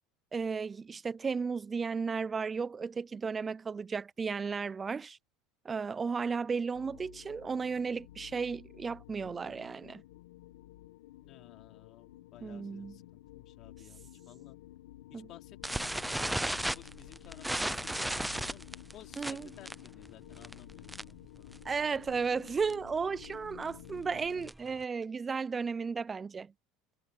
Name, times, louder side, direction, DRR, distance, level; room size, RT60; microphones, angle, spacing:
voice 1, 0.3-5.2 5.6-10.0 12.4-13.0 15.1-15.3 16.7-16.8 19.2-19.5 21.6-26.5, right 5 dB, 25° right, 0.5 m, -34 dB
sound 1, 6.7-24.5, left 15 dB, 90° left, 1.3 m, -52 dB
voice 2, 11.2-14.6 15.1-21.7, left 13 dB, 50° left, 3.5 m, -56 dB
sound 2, 15.6-21.3 21.5-21.8 22.1-22.2 22.5-22.7 23.2-24.8, right 1 dB, 5° right, 0.8 m, -35 dB
supercardioid pair, 100°, 0 cm